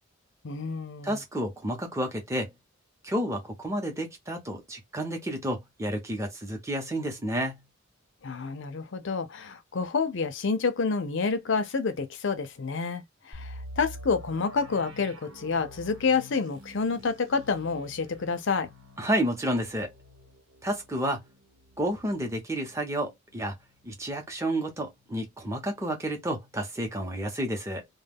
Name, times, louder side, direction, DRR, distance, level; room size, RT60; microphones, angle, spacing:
voice 1, 0.4-1.2 8.2-18.7, left 4 dB, 60° left, 0.6 m, -29 dB
voice 2, 1.0-2.5 3.0-7.6 19.0-19.9 20.6-21.3 21.8-23.5 23.8-27.9, right 1 dB, 15° right, 0.8 m, -30 dB
sound 1, 13.3-23.1 23.4-23.5 24.0-24.2, equal, 80° right, 1.3 m, -47 dB
2.3 x 2.2 x 3.5 m
head